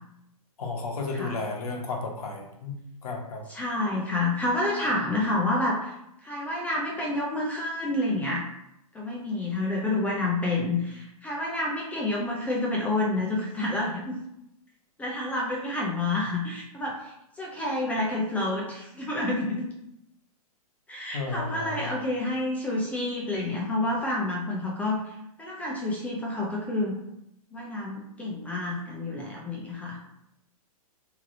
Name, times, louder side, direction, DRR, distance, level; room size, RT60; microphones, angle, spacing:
voice 1, 0.6-3.4 21.1-21.9, left 3 dB, 75° left, 1 dB, 0.9 m, -33 dB
voice 2, 3.5-5.9 6.2-8.4 8.9-14.2 15.0-19.7 20.9-26.9 27.5-30.0, left 2 dB, 10° left, -3 dB, 0.3 m, -29 dB
3.1 x 2.8 x 2.5 m, 0.80 s
hypercardioid pair, 135°, 19 cm